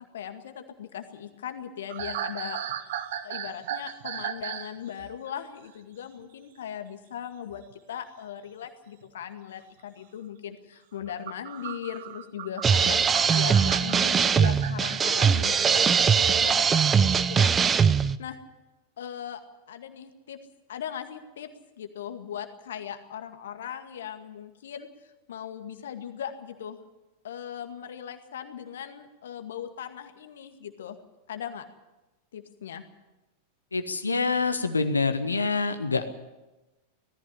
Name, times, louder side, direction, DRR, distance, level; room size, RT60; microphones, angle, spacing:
voice 1, 0.1-2.6 3.2-7.6 7.9-13.0 13.3-17.5 18.2-18.4 19.0-19.4 19.7-20.4 20.7-21.5 21.8-24.9 25.3-26.8 27.2-31.0 31.3-31.6 32.3-32.8, left 9 dB, 60° left, 8 dB, 2.0 m, -38 dB
sound 1, 1.9-4.7 5.0-5.3 7.5-7.7 9.0-9.1 11.0-15.8, right 10 dB, 55° right, 1.3 m, -36 dB
sound 2, 12.6-18.2, right 6 dB, 20° right, 0.6 m, -21 dB
voice 2, 33.7-36.1, left 4 dB, 80° left, 9 dB, 1.6 m, -26 dB
18.5 x 14.5 x 9.9 m, 1.1 s
figure-of-eight pair, 90°, 0 cm